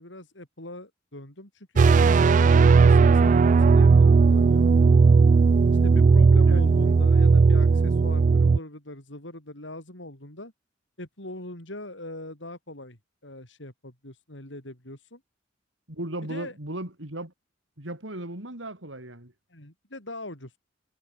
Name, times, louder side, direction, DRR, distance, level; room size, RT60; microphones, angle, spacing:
voice 1, 0.0-4.7 5.8-10.5 11.0-15.2 16.2-16.5 19.5-20.5, left 1 dB, 70° left, 6.3 m, -41 dB
sound 1, 1.8-8.6, right 4 dB, 40° right, 0.3 m, -17 dB
voice 2, 5.7-6.0 6.4-6.6 15.9-17.3 17.8-19.3, right 1 dB, 80° right, 5.2 m, -36 dB
head